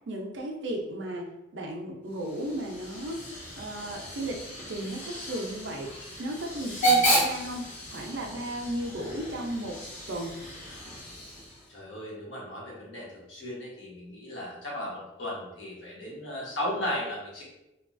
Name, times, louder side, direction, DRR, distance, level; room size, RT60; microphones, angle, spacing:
voice 1, 0.1-3.2 3.6-4.4 4.7-5.9 6.2-7.6 7.9-9.8 10.1-10.4, right 1 dB, 70° right, 1 dB, 0.5 m, -34 dB
Hiss / Train / Alarm, 2.1-11.7, right 1 dB, 45° left, 0.9 m, -32 dB
voice 2, 11.7-17.4, left 1 dB, 75° left, -4 dB, 1.0 m, -36 dB
2.8 x 2.3 x 2.5 m, 0.94 s
head